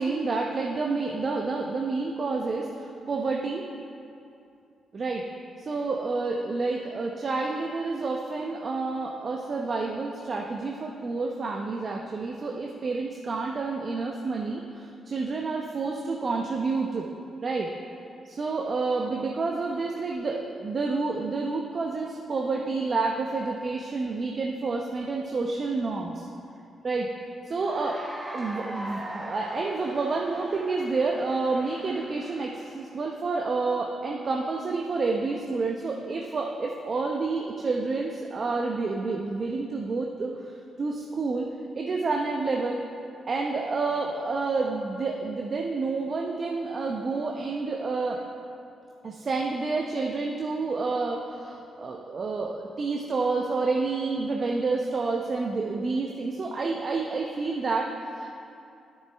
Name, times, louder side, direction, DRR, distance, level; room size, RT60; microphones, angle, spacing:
voice 1, 0.0-3.6 4.9-5.2 5.6-17.1 17.4-17.7 18.3-26.3 26.8-27.1 27.5-28.0 28.3-40.3 40.8-41.5 41.7-42.8 43.3-48.2 49.0-58.3, right 3 dB, 50° right, 0 dB, 0.8 m, -29 dB
Cheering / Applause, 27.6-32.8, right 1 dB, 15° right, 1.2 m, -40 dB
12.0 x 6.6 x 3.4 m, 2.5 s
supercardioid pair, 60°, 0 cm